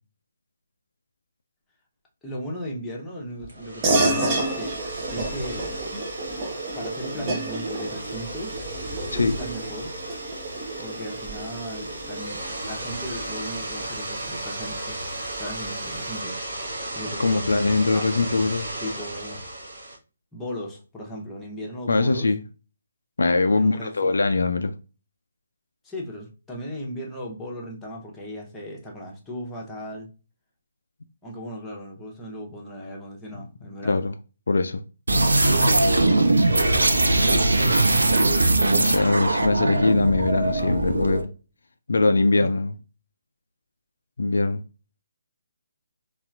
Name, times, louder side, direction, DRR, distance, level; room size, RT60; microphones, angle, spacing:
voice 1, 2.2-5.8 6.7-8.6 9.1-10.0 10.8-12.4 12.7-15.1 15.4-16.4 16.9-17.4 17.9-18.1 18.8-19.4 20.3-22.3 23.6-23.9 25.8-30.1 31.2-34.0 42.3-42.5, equal, 5° left, 0.7 m, -36 dB
sound 1, 3.4-20.0, right 1 dB, 50° right, 1.1 m, -34 dB
sound 2, 3.8-13.7, right 2 dB, 25° right, 0.6 m, -30 dB
voice 2, 17.2-18.7 21.9-22.4 23.2-24.7 33.8-34.1 34.5-34.8 38.3-38.4 38.7-41.3 41.9-42.7 44.2-44.6, left 3 dB, 60° left, 0.3 m, -22 dB
sound 3, 35.1-41.2, right 2 dB, 70° right, 0.5 m, -20 dB
4.1 x 2.4 x 2.3 m
figure-of-eight pair, 140°, 0 cm